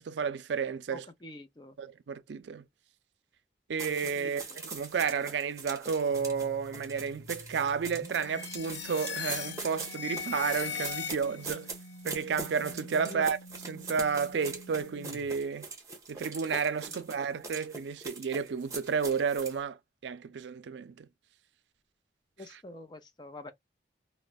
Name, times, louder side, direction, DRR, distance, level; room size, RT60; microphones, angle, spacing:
voice 1, 0.0-1.0 1.8-2.6 3.7-11.7 12.0-13.4 13.7-15.7 16.1-21.1 22.5-22.6, right 6 dB, 90° right, 0.4 m, -32 dB
voice 2, 0.9-1.8 4.2-4.6 13.0-13.3 22.4-23.5, left 1 dB, 25° left, 0.5 m, -46 dB
sound 1, 3.8-19.6, right 3 dB, 20° right, 0.9 m, -42 dB
sound 2, 6.1-15.4, left 1 dB, 45° left, 1.3 m, -50 dB
sound 3, 8.2-11.6, left 8 dB, 80° left, 0.5 m, -38 dB
3.0 x 2.1 x 2.3 m
head